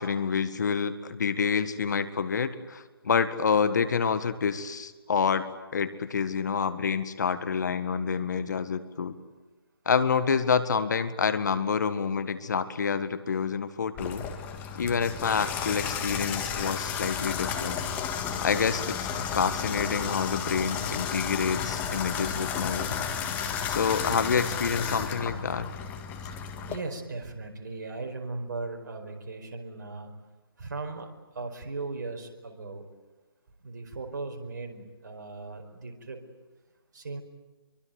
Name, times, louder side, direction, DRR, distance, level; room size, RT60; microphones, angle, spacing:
voice 1, 0.0-9.2 9.8-14.3 14.7-17.8 18.4-23.1 23.7-25.7, left 6 dB, 45° left, 11 dB, 1.7 m, -28 dB
Water tap faucet / Bathtub (filling or washing), 14.0-26.8, left 7 dB, 10° left, 1.7 m, -32 dB
voice 2, 26.7-30.1 30.6-31.1 31.3-32.8 33.6-36.2 36.9-37.2, right 3 dB, 45° right, 4 dB, 4.7 m, -37 dB
26.5 x 23.5 x 9.4 m, 1.2 s
figure-of-eight pair, 150°, 13 cm